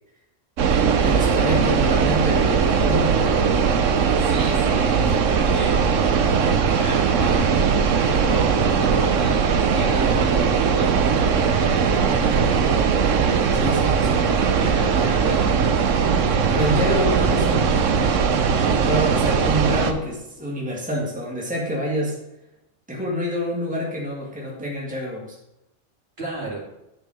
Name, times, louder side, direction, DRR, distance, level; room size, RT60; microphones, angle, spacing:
sound 1, 0.6-19.9, right 6 dB, 80° right, 1.2 m, -19 dB
voice 1, 1.0-3.7 13.5-14.4 16.5-18.2 18.6-22.2 22.9-25.4, equal, 5° right, -3 dB, 2.0 m, -27 dB
voice 2, 4.2-5.9 6.1-12.4 13.8-14.2 14.6-15.5 26.2-26.6, right 2 dB, 50° right, -5 dB, 3.5 m, -33 dB
10.5 x 5.5 x 6.4 m, 0.89 s
omnidirectional pair, 1.3 m